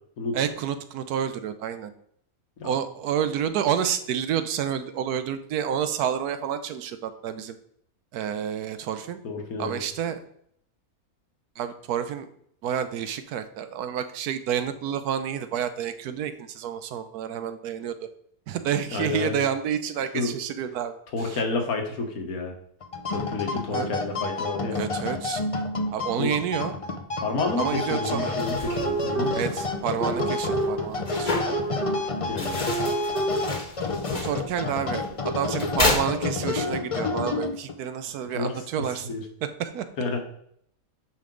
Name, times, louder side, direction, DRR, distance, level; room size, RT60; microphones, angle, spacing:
voice 1, 0.3-1.9 2.6-7.6 8.1-9.2 9.6-10.2 11.6-12.3 12.6-18.0 18.5-21.4 23.7-23.9 24.7-25.4 25.9-26.7 27.6-28.4 29.3-31.4 34.1-39.1 39.4-39.9, right 9 dB, 85° right, 10 dB, 1.2 m, -29 dB
voice 2, 9.2-9.8 18.9-19.4 20.1-20.3 21.1-22.6 23.1-24.8 26.2-26.3 27.2-29.4 32.0-32.9 38.3-38.6 39.0-39.2 40.0-40.2, left 3 dB, 70° left, 4 dB, 1.7 m, -30 dB
sound 1, 22.8-37.8, left 3 dB, 45° left, 0.4 m, -30 dB
sound 2, 28.2-36.8, left 2 dB, 30° left, 1.3 m, -33 dB
sound 3, 28.7-33.5, right 2 dB, 30° right, 1.3 m, -30 dB
9.2 x 5.3 x 3.8 m, 0.69 s
omnidirectional pair, 1.6 m